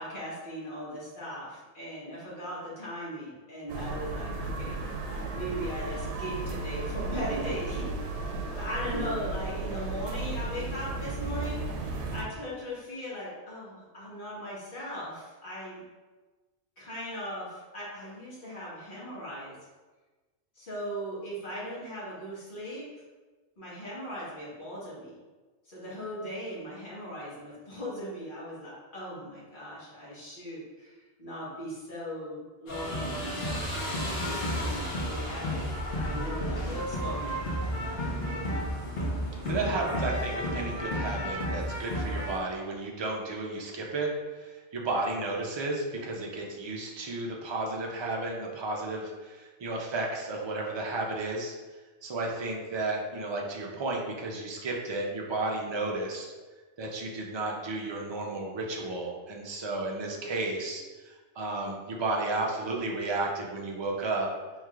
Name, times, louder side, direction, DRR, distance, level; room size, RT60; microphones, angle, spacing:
voice 1, 0.0-4.8 5.3-8.0 8.5-11.6 12.1-15.8 16.8-19.5 20.5-22.8 23.6-25.2 25.7-35.7 36.0-37.3, equal, 45° left, -8 dB, 1.5 m, -38 dB
sound 1, 3.7-12.2, right 3 dB, 80° right, 0.9 m, -34 dB
sound 2, 32.7-42.4, equal, 65° left, 1.1 m, -32 dB
voice 2, 39.4-51.6 52.0-56.3 56.8-64.3, right 2 dB, 40° right, -1 dB, 0.4 m, -33 dB
4.7 x 3.1 x 2.4 m, 1.2 s
omnidirectional pair, 1.2 m